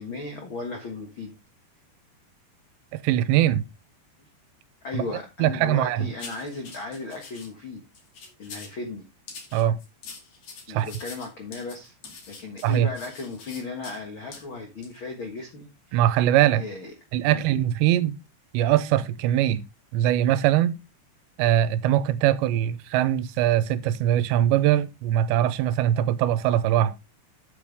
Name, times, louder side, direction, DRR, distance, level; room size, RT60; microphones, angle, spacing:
voice 1, 0.0-1.4 4.8-7.8 8.4-9.0 10.7-11.9 12.3-16.1 16.5-16.9 17.2-17.4, left 3 dB, 85° left, 1.1 m, -36 dB
voice 2, 2.9-3.6 4.9-5.1 5.4-6.1 9.5-9.8 10.7-10.9 12.6-12.9 15.9-16.6 17.1-18.2 18.5-19.6 19.9-20.8 21.4-26.9, right 12 dB, 85° right, 3.0 m, -22 dB
sound 1, 6.2-7.5 7.9-8.8 9.3-14.0 14.3-14.4 14.8-15.0, left 4 dB, 45° left, 2.9 m, -44 dB
9.0 x 8.4 x 3.4 m
omnidirectional pair, 5.0 m